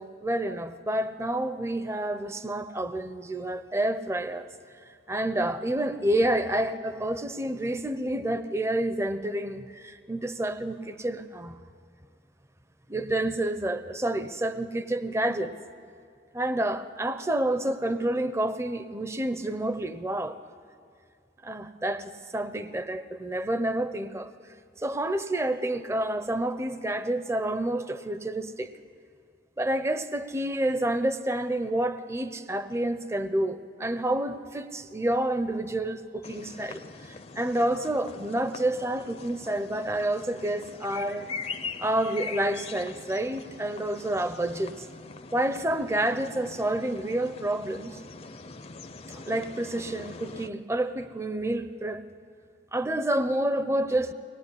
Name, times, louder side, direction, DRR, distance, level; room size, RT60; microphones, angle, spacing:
voice 1, 0.0-4.5 5.1-11.6 12.9-15.5 16.3-20.4 21.4-24.3 24.8-28.7 29.6-36.8 37.4-41.3 41.8-44.8 45.3-48.0 49.1-52.0 52.7-54.1, right 1 dB, 15° right, 11 dB, 0.7 m, -29 dB
sound 1, 36.2-50.5, left 4 dB, 35° left, 0.6 m, -42 dB
23.5 x 19.5 x 9.8 m, 2.3 s
head